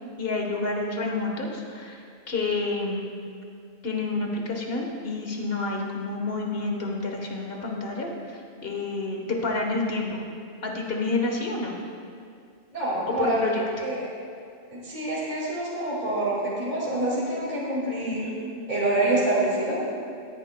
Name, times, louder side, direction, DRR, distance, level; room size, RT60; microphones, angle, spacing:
voice 1, 0.2-3.1 3.8-10.2 10.6-11.8 13.1-13.6 18.0-18.7, left 3 dB, 50° left, 1 dB, 1.5 m, -29 dB
voice 2, 12.7-14.1 14.7-18.3 18.7-19.8, right 2 dB, 35° right, -7 dB, 2.4 m, -26 dB
17.5 x 10.5 x 2.3 m, 2.3 s
omnidirectional pair, 1.3 m